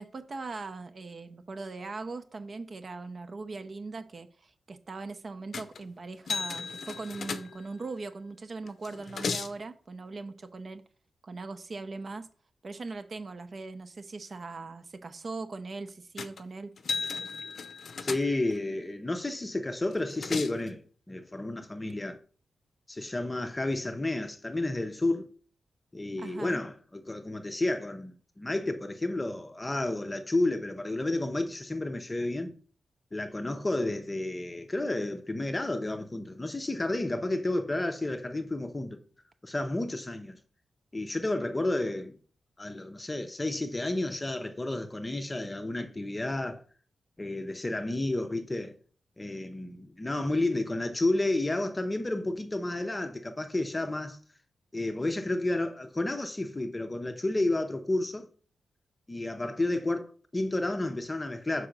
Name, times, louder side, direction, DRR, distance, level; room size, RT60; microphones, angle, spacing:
voice 1, 0.0-10.8 11.2-12.3 12.6-16.7 26.2-26.6, right 3 dB, 35° right, 0.7 m, -40 dB
sound 1, 5.5-5.9 6.3-7.9 8.7-9.6 16.2-16.4 16.8-18.6 19.9-20.7, left 5 dB, 50° left, 0.6 m, -36 dB
voice 2, 18.0-20.8 21.1-22.2 22.9-25.3 25.9-32.5 33.1-39.0 39.4-40.4 40.9-42.2 42.6-46.6 47.2-48.8 49.2-54.2 54.7-58.3 59.1-61.7, left 2 dB, 15° left, 0.7 m, -31 dB
5.7 x 4.8 x 6.6 m
wide cardioid pair, 165°, 0 cm